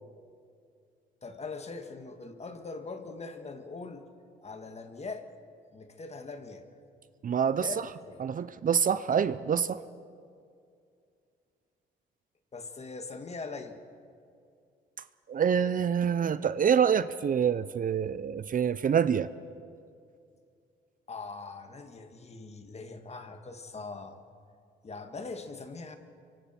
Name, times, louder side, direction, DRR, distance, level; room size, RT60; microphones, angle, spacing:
voice 1, 1.2-4.1 4.4-5.3 5.7-6.7 7.6-8.2 12.5-13.8 21.1-24.2 24.8-26.0, left 4 dB, 35° left, 7 dB, 1.9 m, -41 dB
voice 2, 7.2-7.7 8.2-9.8 15.3-19.3, right 7 dB, 45° right, 14 dB, 0.6 m, -26 dB
26.0 x 24.0 x 4.5 m, 2.4 s
cardioid pair, 90°, 20 cm